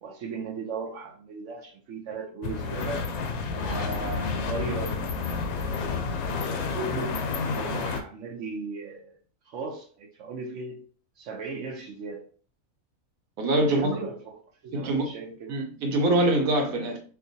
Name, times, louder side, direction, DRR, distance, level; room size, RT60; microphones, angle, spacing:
voice 1, 0.0-3.0 3.5-5.1 6.0-7.2 7.5-9.2 9.5-10.8 11.2-12.2 13.7-15.5, right 4 dB, 65° right, 0.9 m, -37 dB
sound 1, 2.4-8.0, left 4 dB, 80° left, 1.0 m, -30 dB
voice 2, 13.4-13.9 14.7-15.1 15.5-17.0, right 1 dB, 85° right, 1.1 m, -24 dB
4.5 x 2.2 x 2.6 m
omnidirectional pair, 1.5 m